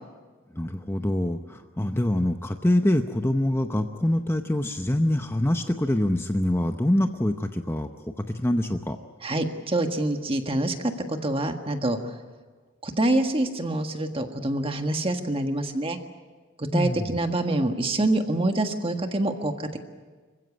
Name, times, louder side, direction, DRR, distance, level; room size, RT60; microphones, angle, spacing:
voice 1, 0.5-9.0 16.7-17.1, left 1 dB, 10° left, 6 dB, 0.7 m, -25 dB
voice 2, 9.2-10.7 11.1-12.1 12.8-16.0 16.6-19.8, right 1 dB, 25° right, 6 dB, 1.6 m, -26 dB
25.5 x 16.0 x 9.7 m, 1.4 s
head